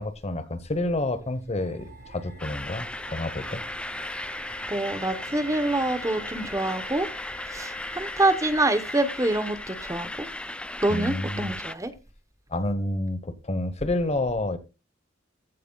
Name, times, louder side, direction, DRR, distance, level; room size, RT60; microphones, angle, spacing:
voice 1, 0.0-2.9 3.1-3.6 10.9-11.5 12.5-14.6, left 1 dB, 35° left, 1.1 m, -29 dB
sound 1, 1.6-7.0, right 3 dB, 55° right, 4.0 m, -49 dB
sound 2, 1.7-11.6, left 2 dB, 50° left, 3.4 m, -44 dB
sound 3, 2.4-11.8, left 1 dB, 5° left, 0.4 m, -37 dB
voice 2, 4.7-7.1 7.5-10.3 10.8-11.9, right 2 dB, 15° right, 1.0 m, -26 dB
14.5 x 9.2 x 2.3 m
head